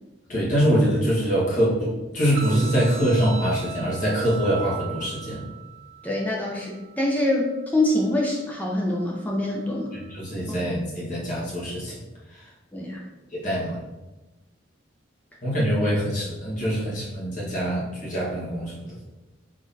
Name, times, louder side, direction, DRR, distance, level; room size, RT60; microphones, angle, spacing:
voice 1, 0.3-5.5 10.1-12.0 12.3-12.5 13.3-13.8 15.4-19.0, equal, 40° left, -6 dB, 1.3 m, -24 dB
sound 1, 2.3-10.3, right 8 dB, 85° right, 1.0 m, -41 dB
voice 2, 6.0-9.9 10.5-10.6 12.7-13.0, left 1 dB, 10° left, -3 dB, 0.4 m, -25 dB
3.7 x 3.6 x 2.6 m, 1.1 s
head